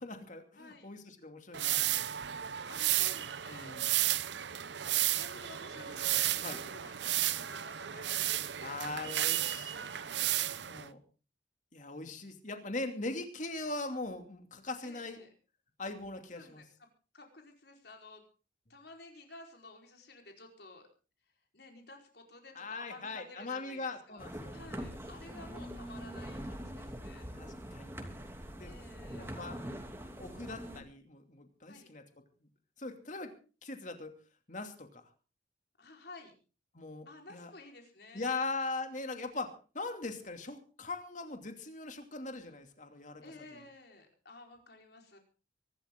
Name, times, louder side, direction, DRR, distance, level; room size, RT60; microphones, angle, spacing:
voice 1, 0.0-2.1 3.5-3.9 6.4-6.6 8.6-11.0 11.7-15.2 15.8-16.6 22.5-24.6 27.1-28.0 28.6-28.7 29.2-29.6 30.2-32.0 32.8-33.3 33.6-34.1 34.5-35.0 36.7-37.5 38.1-43.2, left 3 dB, 45° left, 6 dB, 2.7 m, -41 dB
voice 2, 0.5-0.9 2.7-3.8 5.0-8.9 14.8-15.3 16.3-16.9 17.1-18.2 18.7-20.9 21.5-27.6 28.6-29.4 31.7-31.9 35.8-36.3 37.1-38.5 43.2-45.2, left 2 dB, 60° left, 3 dB, 4.6 m, -53 dB
sound 1, 1.5-10.9, right 13 dB, 75° right, 0.7 m, -33 dB
sound 2, 24.2-30.8, equal, 15° right, 2.8 m, -43 dB
23.5 x 12.5 x 3.8 m, 0.36 s
head